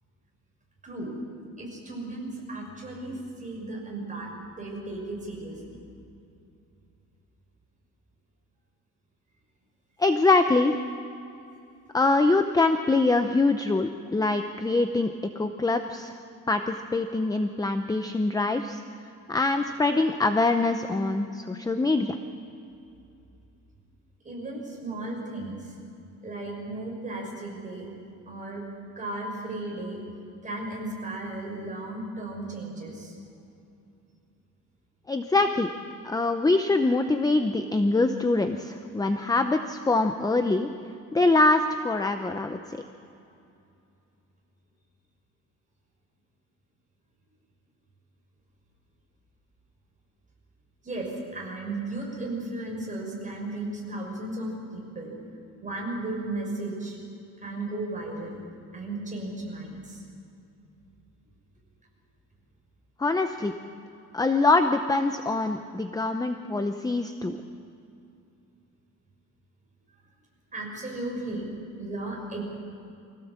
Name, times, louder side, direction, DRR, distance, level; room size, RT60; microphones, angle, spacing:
voice 1, 0.8-1.1 1.6-4.3 4.5-5.8 24.2-25.7 26.2-27.9 28.3-28.6 29.0-30.0 30.4-33.2 50.8-55.1 55.6-57.0 57.4-58.4 58.7-60.0 70.5-71.4 71.8-72.4, right 2 dB, 25° right, -2 dB, 6.1 m, -35 dB
voice 2, 10.0-10.8 11.9-15.1 15.4-16.2 16.5-18.8 19.3-22.2 35.1-35.7 36.0-40.7 41.1-42.8 63.0-63.5 64.1-67.4, left 3 dB, 10° left, 7 dB, 0.7 m, -24 dB
24.0 x 16.5 x 7.4 m, 2.6 s
wide cardioid pair, 155°, 32 cm